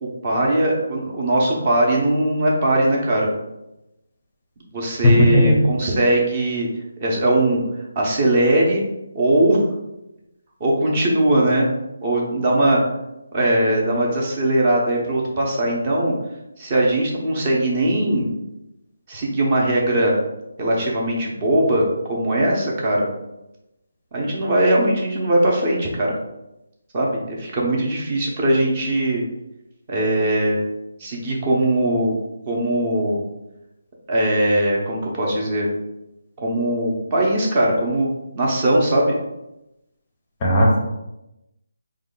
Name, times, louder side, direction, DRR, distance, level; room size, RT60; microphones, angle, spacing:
voice 1, 0.0-3.3 4.7-6.7 7.0-7.6 8.0-8.8 9.1-9.6 10.6-11.7 12.0-12.8 13.3-16.1 16.6-18.3 19.1-20.1 20.6-23.1 24.1-26.1 26.9-29.2 29.9-30.6 31.0-32.1 32.5-33.2 34.1-35.7 36.4-38.1 38.3-39.1, right 1 dB, 25° right, -2 dB, 0.6 m, -20 dB
voice 2, 5.0-5.6 40.4-40.8, left 1 dB, 20° left, -1 dB, 0.6 m, -15 dB
4.3 x 2.2 x 3.8 m, 0.91 s
hypercardioid pair, 175°, 0 cm